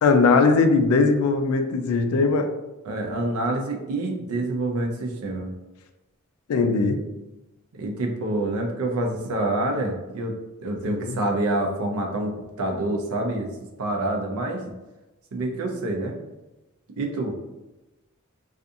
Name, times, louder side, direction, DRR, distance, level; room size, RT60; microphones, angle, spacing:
voice 1, 0.0-2.5 6.5-7.0 10.9-11.2, left 4 dB, 85° left, 7 dB, 0.3 m, -20 dB
voice 2, 2.9-5.5 7.7-10.3 10.6-13.5 13.8-14.6 15.3-16.1 17.0-17.4, right 2 dB, 85° right, 2 dB, 0.5 m, -27 dB
2.5 x 2.4 x 2.6 m, 1.0 s
head